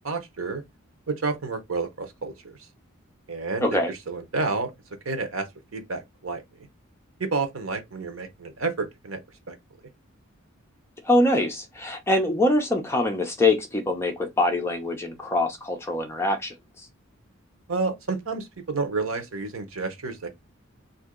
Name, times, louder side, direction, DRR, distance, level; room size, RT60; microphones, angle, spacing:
voice 1, 0.0-0.6 1.1-2.6 3.3-4.7 5.0-5.5 5.7-6.4 7.2-9.2 9.5-9.6 17.7-20.3, right 4 dB, 75° right, 0.9 m, -30 dB
voice 2, 3.6-3.9 11.0-16.9, left 1 dB, 10° left, 0.6 m, -24 dB
2.8 x 2.7 x 3.7 m
head